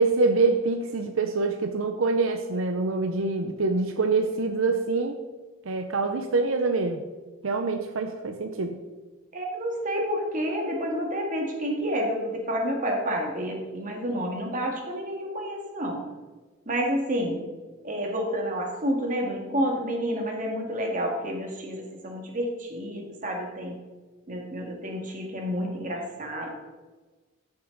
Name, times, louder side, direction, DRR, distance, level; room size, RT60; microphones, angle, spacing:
voice 1, 0.0-5.2 5.6-7.0 7.4-8.8, right 3 dB, 80° right, 5 dB, 0.7 m, -25 dB
voice 2, 9.3-16.0 16.7-17.4 17.8-23.8 24.3-26.5, equal, 40° right, 1 dB, 2.1 m, -29 dB
14.0 x 6.8 x 3.9 m, 1.2 s
head